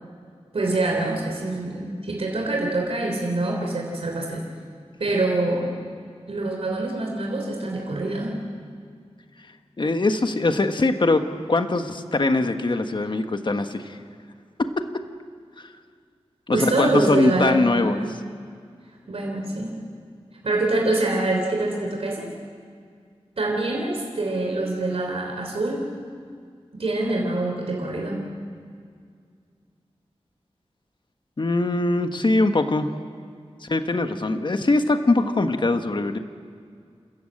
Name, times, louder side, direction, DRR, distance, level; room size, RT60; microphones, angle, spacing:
voice 1, 0.5-4.4 5.0-5.7 6.3-8.3 16.5-18.1 19.1-19.7 20.4-22.3 23.4-25.8 26.7-28.2, right 2 dB, 65° right, 0 dB, 3.4 m, -25 dB
voice 2, 9.8-14.0 14.6-15.0 16.5-18.0 31.4-32.9 33.6-36.2, left 2 dB, 45° left, 7 dB, 1.4 m, -22 dB
29.0 x 14.0 x 8.8 m, 2.1 s
wide cardioid pair, 95°, 11 cm